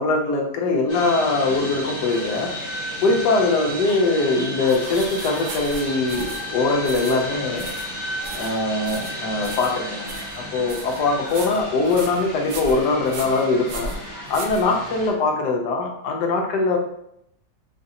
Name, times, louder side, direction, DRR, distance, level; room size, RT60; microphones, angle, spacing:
voice 1, 0.0-2.5 3.0-7.7 8.3-13.9 14.3-16.8, left 3 dB, 80° left, 1 dB, 1.3 m, -22 dB
sound 1, 0.9-15.1, equal, 45° left, 1.3 m, -33 dB
sound 2, 4.7-15.1, right 3 dB, 75° right, 1.1 m, -38 dB
3.9 x 2.6 x 2.7 m, 0.74 s
omnidirectional pair, 1.8 m